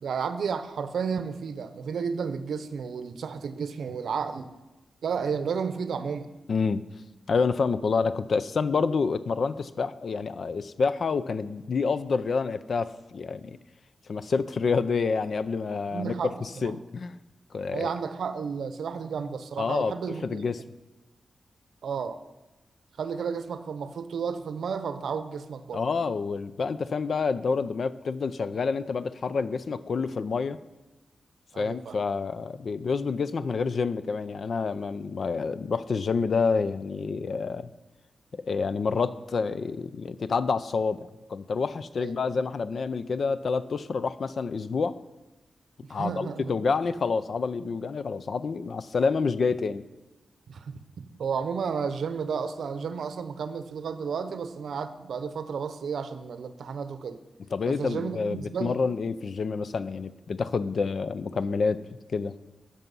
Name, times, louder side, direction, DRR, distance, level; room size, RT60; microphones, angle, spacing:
voice 1, 0.0-4.5 5.0-6.3 15.9-16.7 17.7-20.4 21.8-22.2 23.0-25.8 31.5-32.0 42.0-42.1 45.9-46.5 50.5-57.2 57.7-58.8, right 6 dB, 85° right, 11 dB, 0.7 m, -32 dB
voice 2, 6.5-6.9 7.3-13.6 14.1-16.1 16.4-17.1 17.5-17.9 19.6-19.9 20.2-20.6 25.7-30.6 31.6-37.7 38.3-41.0 41.3-45.0 45.9-49.9 57.5-61.8 62.1-62.4, left 4 dB, 50° left, 14 dB, 0.4 m, -28 dB
13.5 x 6.8 x 5.4 m, 1.1 s
wide cardioid pair, 165°, 0 cm